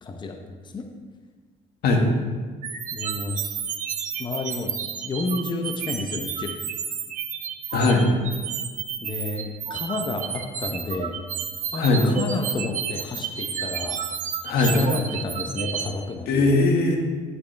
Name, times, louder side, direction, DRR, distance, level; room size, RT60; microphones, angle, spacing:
voice 1, 0.0-0.4 0.7-0.9 2.9-3.6 4.2-4.8 5.0-6.5 9.0-11.2 11.7-14.2 14.5-16.5, left 3 dB, 25° left, 4 dB, 0.9 m, -31 dB
sound 1, 2.6-15.9, right 7 dB, 50° right, 1.0 m, -31 dB
voice 2, 7.7-8.1 11.8-12.1 14.4-14.8 16.3-17.0, left 2 dB, 70° left, 1 dB, 1.9 m, -19 dB
11.0 x 8.5 x 3.5 m, 1.5 s
cardioid pair, 110°, 17 cm